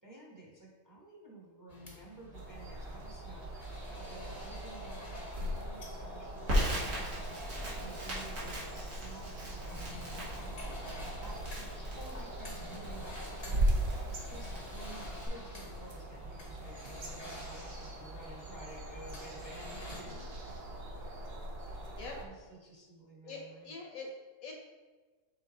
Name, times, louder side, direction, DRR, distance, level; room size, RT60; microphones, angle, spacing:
voice 1, 0.0-7.4 7.8-20.6 22.2-23.7, right 2 dB, 15° right, -4 dB, 1.1 m, -52 dB
sound 1, 1.7-20.0, left 2 dB, 30° left, 0.9 m, -50 dB
sound 2, 2.3-22.2, right 1 dB, 45° right, 0.9 m, -40 dB
Crackle, 6.5-15.3, equal, 75° right, 2.5 m, -39 dB
voice 2, 19.9-20.3 22.0-22.2 23.2-24.1 24.4-24.5, left 3 dB, 65° left, 1 dB, 1.3 m, -44 dB
6.9 x 3.8 x 4.2 m, 1.3 s
omnidirectional pair, 1.6 m